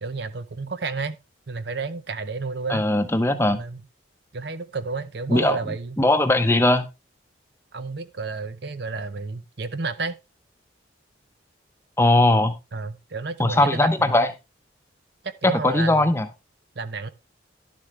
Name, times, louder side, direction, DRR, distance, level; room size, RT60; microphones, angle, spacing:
voice 1, 0.0-1.2 1.5-2.8 3.5-3.8 4.3-6.0 7.7-10.2 12.7-14.2 15.2-16.1 16.8-17.1, right 4 dB, 55° right, 0.7 m, -31 dB
voice 2, 2.7-3.6 5.3-5.6 6.0-6.9 12.0-12.5 13.4-14.3 15.6-16.3, left 1 dB, 15° left, 0.8 m, -19 dB
11.0 x 7.5 x 3.2 m
head